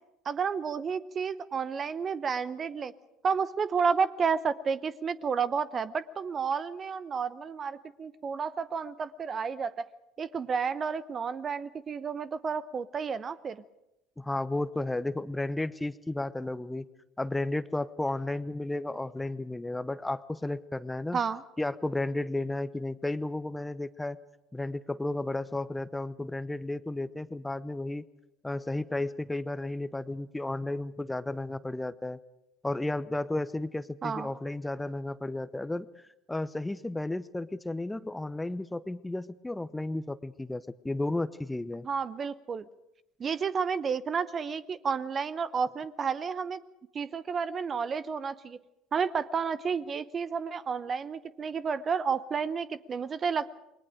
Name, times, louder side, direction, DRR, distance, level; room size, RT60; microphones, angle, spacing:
voice 1, 0.2-2.9 3.2-9.9 10.2-13.6 21.1-21.4 34.0-34.3 41.8-42.6 43.2-46.6 46.9-48.6 48.9-53.6, right 6 dB, 35° right, 16 dB, 0.8 m, -31 dB
voice 2, 14.2-16.9 17.2-21.2 21.6-24.2 24.5-28.0 28.4-32.2 32.6-35.9 36.3-41.9, left 2 dB, 10° left, 15 dB, 0.9 m, -33 dB
28.5 x 21.5 x 5.1 m, 0.90 s
figure-of-eight pair, 60°, 0 cm